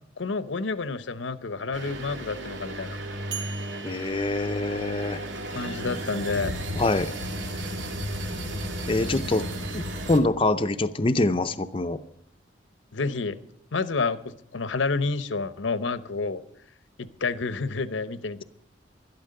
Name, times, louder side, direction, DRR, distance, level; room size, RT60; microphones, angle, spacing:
voice 1, 0.2-3.0 5.5-6.5 12.9-13.4 13.7-16.4 17.0-18.4, left 4 dB, 90° left, 14 dB, 0.8 m, -29 dB
sound 1, 1.7-10.2, right 1 dB, 80° right, 2.1 m, -34 dB
sound 2, 3.3-5.4, right 8 dB, 60° right, 1.7 m, -41 dB
voice 2, 3.8-5.2 5.6-5.7 6.8-7.1 8.9-9.5 9.7-12.0, left 2 dB, 30° left, 8 dB, 0.5 m, -25 dB
12.5 x 12.0 x 6.5 m, 0.73 s
head